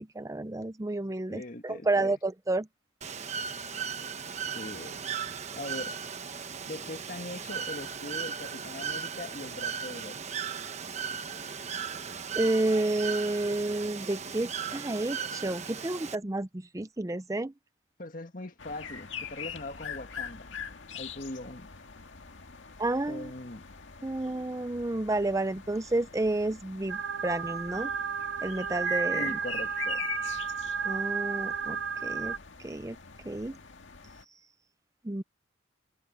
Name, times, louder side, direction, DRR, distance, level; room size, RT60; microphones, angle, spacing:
voice 1, 0.0-2.7 12.3-17.5 22.8-23.3 24.0-27.9 28.4-29.3 30.8-33.0 33.2-33.6 35.0-35.2, right 2 dB, 15° right, 0.5 m, -30 dB
voice 2, 1.3-2.1 4.5-5.0 5.5-5.9 6.6-10.2 18.0-20.5 20.9-21.7 23.1-23.6 29.1-30.1, left 1 dB, 45° left, 1.8 m, -41 dB
Bird / Water, 3.0-16.2, right 7 dB, 35° right, 1.1 m, -37 dB
sound 1, 18.6-34.2, left 7 dB, 80° left, 1.9 m, -43 dB
sound 2, 26.9-32.4, right 6 dB, 75° right, 0.7 m, -32 dB
head